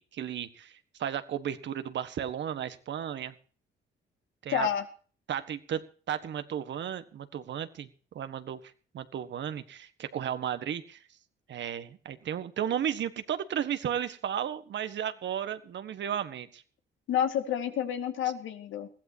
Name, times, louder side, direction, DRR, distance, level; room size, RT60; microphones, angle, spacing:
voice 1, 0.0-3.3 4.4-4.7 5.3-5.8 6.1-7.9 8.1-8.6 8.9-11.0 11.5-16.6, right 9 dB, 65° right, 11 dB, 1.6 m, -34 dB
voice 2, 4.5-4.9 17.1-18.9, left 9 dB, 80° left, 7 dB, 2.2 m, -29 dB
21.0 x 15.5 x 2.9 m, 0.41 s
cardioid pair, 90°, 20 cm